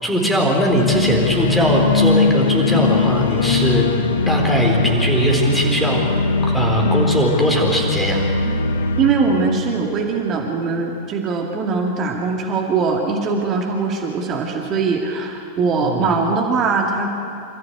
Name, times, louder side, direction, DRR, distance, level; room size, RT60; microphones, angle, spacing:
voice 1, 0.0-3.8 4.3-6.0 6.4-8.2 15.8-16.1, equal, 5° left, 0 dB, 4.4 m, -19 dB
sound 1, 0.7-10.8, left 3 dB, 65° left, 1.1 m, -20 dB
voice 2, 9.0-17.1, right 4 dB, 30° right, 1 dB, 2.3 m, -21 dB
27.0 x 14.0 x 8.3 m, 2.6 s
figure-of-eight pair, 90°, 0 cm